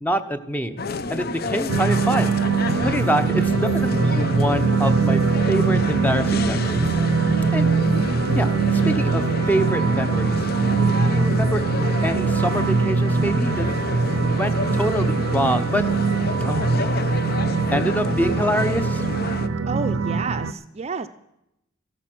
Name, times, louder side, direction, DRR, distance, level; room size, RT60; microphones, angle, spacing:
voice 1, 0.0-0.8 1.1-2.4 2.7-6.9 7.5-7.7 8.3-10.4 11.0-11.6 12.0-13.7 14.3-15.8 16.4-17.2 17.7-19.1, equal, 10° left, 10 dB, 0.8 m, -26 dB
sound 1, 0.8-19.5, left 3 dB, 50° left, 0.7 m, -30 dB
sound 2, 1.7-20.5, right 4 dB, 85° right, 0.6 m, -22 dB
voice 2, 19.7-21.1, right 4 dB, 30° right, 10 dB, 0.5 m, -30 dB
14.0 x 12.5 x 6.1 m, 0.83 s
head